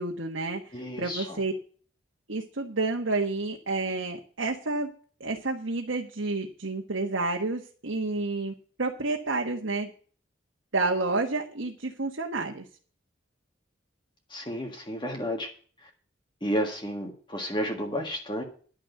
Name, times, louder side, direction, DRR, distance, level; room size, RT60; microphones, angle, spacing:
voice 1, 0.0-1.5 2.3-4.9 5.2-9.9 10.7-12.6, right 3 dB, 75° right, 1 dB, 1.4 m, -30 dB
voice 2, 0.7-1.4 14.3-15.5 15.8-15.9 16.4-18.4, equal, 25° left, 2 dB, 1.7 m, -32 dB
10.5 x 6.5 x 8.1 m, 0.42 s
head